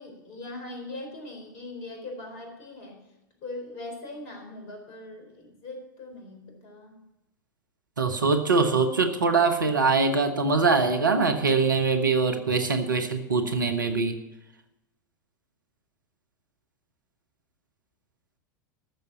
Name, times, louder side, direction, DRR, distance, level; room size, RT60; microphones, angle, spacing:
voice 1, 0.0-3.0 3.4-6.9, left 2 dB, 50° left, 3 dB, 4.0 m, -40 dB
voice 2, 8.0-14.2, right 4 dB, 75° right, 7 dB, 1.3 m, -23 dB
13.5 x 6.9 x 7.4 m, 0.94 s
figure-of-eight pair, 85°, 11 cm